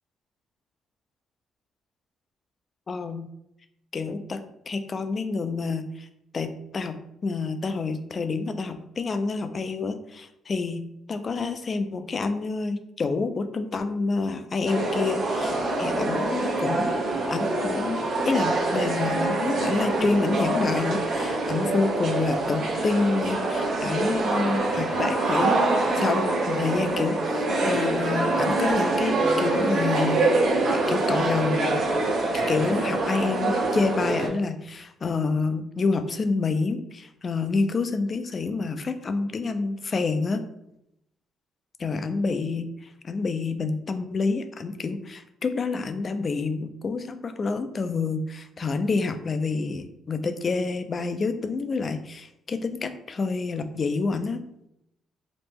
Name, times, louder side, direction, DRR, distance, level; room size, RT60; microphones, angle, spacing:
voice 1, 2.9-3.3 3.9-6.1 6.3-10.8 11.1-16.9 17.3-25.5 25.9-30.2 30.9-31.8 32.5-40.4 41.8-42.7 43.0-54.4, left 4 dB, 40° left, 9 dB, 0.3 m, -28 dB
sound 1, 14.7-34.3, right 2 dB, 70° right, 0.8 m, -25 dB
3.0 x 2.1 x 3.4 m, 0.81 s
cardioid pair, 90°, 0 cm